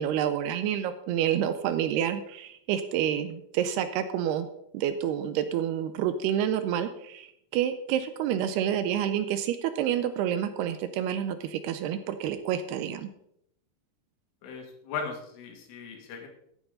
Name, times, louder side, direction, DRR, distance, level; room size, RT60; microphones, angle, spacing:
voice 1, 0.0-4.5 4.7-13.1, right 10 dB, 80° right, 10 dB, 2.4 m, -28 dB
voice 2, 14.4-16.3, left 5 dB, 90° left, 3 dB, 4.6 m, -37 dB
15.5 x 8.8 x 3.9 m, 0.74 s
omnidirectional pair, 5.4 m